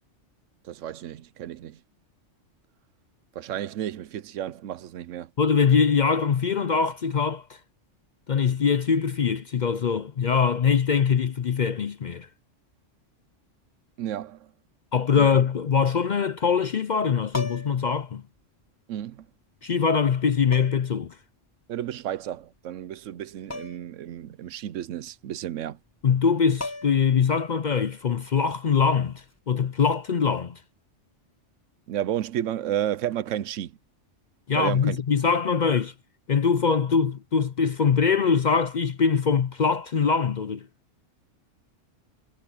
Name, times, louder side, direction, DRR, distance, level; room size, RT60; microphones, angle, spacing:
voice 1, 0.7-1.8 3.4-5.3 14.0-14.4 15.2-15.4 18.9-19.2 21.7-25.8 31.9-33.7 34.5-35.0, right 11 dB, 80° right, 1.0 m, -32 dB
voice 2, 5.4-7.6 8.3-12.3 14.9-18.2 19.6-21.1 26.0-30.6 34.5-35.9 36.3-40.7, left 6 dB, 50° left, 0.6 m, -23 dB
sound 1, 17.3-17.9 19.2-19.3 20.5-21.0 23.5-23.9 24.3-24.4 26.2-26.3 26.6-27.2 29.2-29.4, left 2 dB, 15° left, 1.2 m, -36 dB
omnidirectional pair, 1.3 m